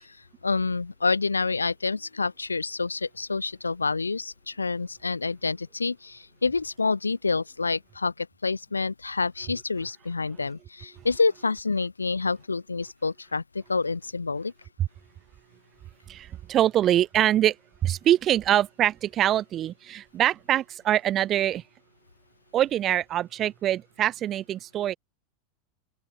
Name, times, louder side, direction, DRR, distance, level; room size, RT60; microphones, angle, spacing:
voice 1, 0.4-14.5, left 4 dB, 85° left, 4.7 m, -28 dB
voice 2, 16.1-17.6 17.8-21.6 22.5-25.0, right 12 dB, 35° right, 4.7 m, -24 dB
open air
figure-of-eight pair, 85°, 0 cm